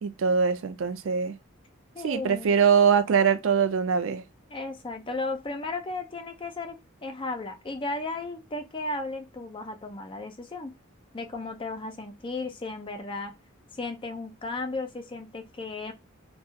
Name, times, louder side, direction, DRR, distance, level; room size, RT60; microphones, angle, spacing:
voice 1, 0.0-1.3 2.0-4.2, right 6 dB, 65° right, 0.4 m, -23 dB
voice 2, 1.9-2.5 4.5-10.7 11.1-13.3 13.7-15.9, left 2 dB, 25° left, 0.4 m, -35 dB
2.3 x 2.2 x 2.7 m
head